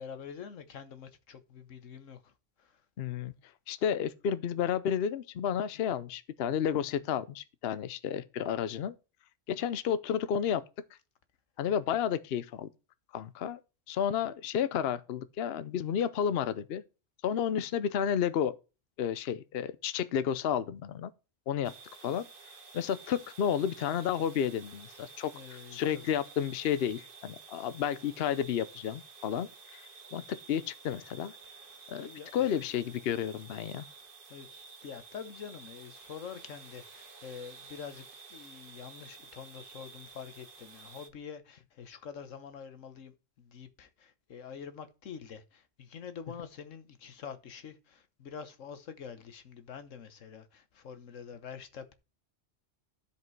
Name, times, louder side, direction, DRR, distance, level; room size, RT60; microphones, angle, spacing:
voice 1, 0.0-2.3 2.6-2.8 25.3-26.0 31.4-32.3 33.8-34.0 34.3-38.0 38.3-51.9, left 7 dB, 85° left, 1.4 m, -46 dB
voice 2, 3.0-3.3 3.7-9.0 9.5-10.6 11.6-12.7 13.1-13.6 13.9-16.8 17.2-18.5 19.0-21.1 21.5-21.7 22.0-22.2 22.7-31.3 31.9-33.8, left 8 dB, 60° left, 0.8 m, -31 dB
sound 1, 21.6-41.1, right 4 dB, 45° right, 1.3 m, -52 dB
12.5 x 5.2 x 4.5 m
omnidirectional pair, 1.3 m